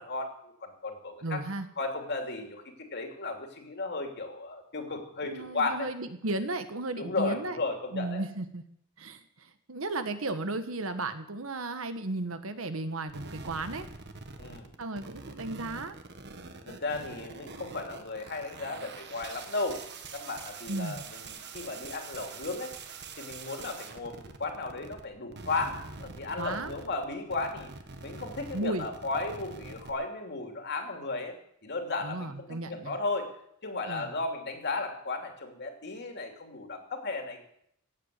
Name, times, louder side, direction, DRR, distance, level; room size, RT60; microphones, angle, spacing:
voice 1, 0.0-1.4 1.8-2.6 2.9-5.9 7.0-8.2 14.4-14.7 16.6-19.8 20.1-22.7 23.2-27.7 28.0-31.4 31.6-33.4 33.6-37.4, left 3 dB, 55° left, 4 dB, 2.9 m, -35 dB
voice 2, 1.2-1.7 5.2-7.6 7.9-8.6 9.0-13.9 14.8-15.9 20.7-21.0 26.4-26.7 28.5-28.9 32.0-33.0 33.9-34.1, right 2 dB, 75° right, 9 dB, 1.4 m, -34 dB
sound 1, 13.1-25.0 25.3-29.9, right 4 dB, 55° right, 1.5 m, -45 dB
16.5 x 8.0 x 8.4 m, 0.71 s
head